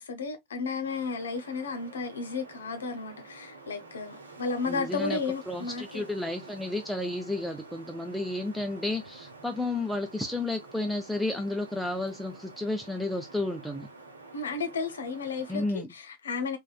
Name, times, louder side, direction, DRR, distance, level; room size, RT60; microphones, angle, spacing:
voice 1, 0.0-6.0 14.3-16.6, left 4 dB, 65° left, 0.6 m, -33 dB
Wind, 0.8-15.7, right 3 dB, 75° right, 0.7 m, -49 dB
voice 2, 4.7-5.2 5.5-13.9 15.5-15.9, left 2 dB, ahead, 0.4 m, -32 dB
3.4 x 2.1 x 2.3 m
figure-of-eight pair, 90°, 0 cm